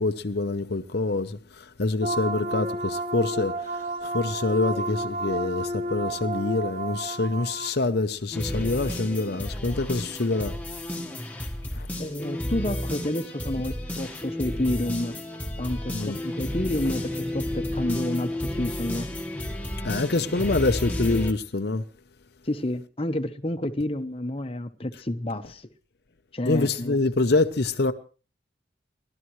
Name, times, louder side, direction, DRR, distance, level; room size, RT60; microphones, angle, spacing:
voice 1, 0.0-10.6 11.7-11.9 15.9-16.2 19.8-21.8 26.5-27.9, left 3 dB, 55° left, 0.7 m, -26 dB
sound 1, 2.0-7.7, right 1 dB, 40° right, 4.7 m, -31 dB
sound 2, 8.3-21.3, left 1 dB, 10° left, 1.4 m, -32 dB
voice 2, 12.0-15.1 15.6-19.1 22.4-25.7 26.3-27.0, left 1 dB, 30° left, 0.9 m, -29 dB
30.0 x 12.5 x 3.1 m
head